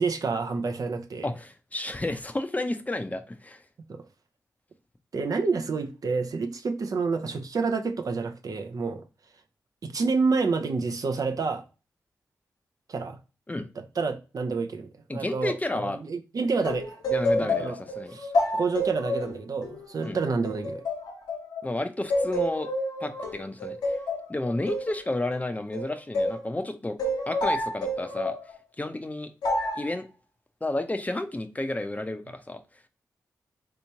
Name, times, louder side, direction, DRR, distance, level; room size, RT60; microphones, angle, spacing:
voice 1, 0.0-1.3 3.9-4.0 5.1-9.0 9.8-11.6 12.9-13.2 13.8-17.0 17.4-17.7 18.1-20.8, right 4 dB, 60° right, 0.6 m, -28 dB
voice 2, 1.2-3.6 13.5-13.7 15.1-16.0 17.1-18.2 20.0-20.2 21.6-22.7 23.0-24.0 24.3-27.0 27.3-28.3 28.8-29.3 29.8-30.0 30.6-32.6, left 2 dB, 20° left, 0.5 m, -31 dB
sound 1, 16.6-21.7 22.1-26.4 27.0-28.4 29.4-29.9, left 1 dB, 90° left, 0.9 m, -29 dB
3.4 x 2.9 x 2.8 m
supercardioid pair, 40°, 7 cm